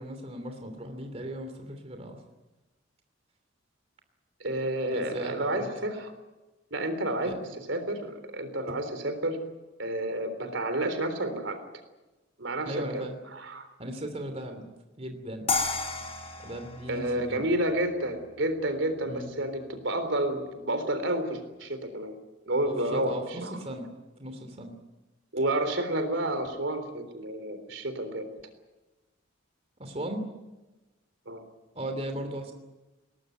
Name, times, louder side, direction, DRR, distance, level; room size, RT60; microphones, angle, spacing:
voice 1, 0.0-2.2 4.9-5.7 7.2-7.4 12.6-13.2 13.8-14.7 15.0-15.5 16.4-17.4 19.0-19.3 22.6-23.9 24.2-24.7 29.8-30.3 31.7-32.5, right 1 dB, 30° right, 5 dB, 3.0 m, -37 dB
voice 2, 4.4-6.1 6.7-9.4 9.8-11.6 12.4-13.0 13.3-13.7 16.9-22.1 22.5-23.6 25.3-28.3 31.3-31.4, right 1 dB, 70° right, 9 dB, 3.7 m, -30 dB
sound 1, 15.5-18.5, left 3 dB, 35° left, 3.9 m, -33 dB
22.0 x 19.5 x 9.3 m, 1.1 s
head